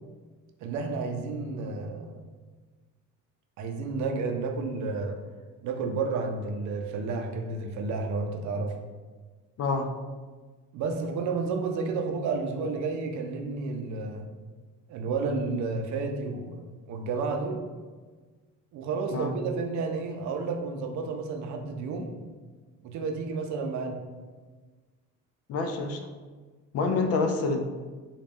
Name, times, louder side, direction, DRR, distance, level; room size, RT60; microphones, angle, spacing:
voice 1, 0.6-2.2 3.6-5.2 5.6-8.7 10.7-14.3 14.9-17.7 18.7-22.2 22.8-24.0, right 4 dB, 65° right, 4 dB, 0.6 m, -31 dB
voice 2, 9.6-9.9 19.1-19.3 25.5-26.0 26.7-27.6, left 3 dB, 50° left, 6 dB, 0.4 m, -27 dB
3.9 x 2.4 x 3.5 m, 1.4 s
cardioid pair, 145°, 31 cm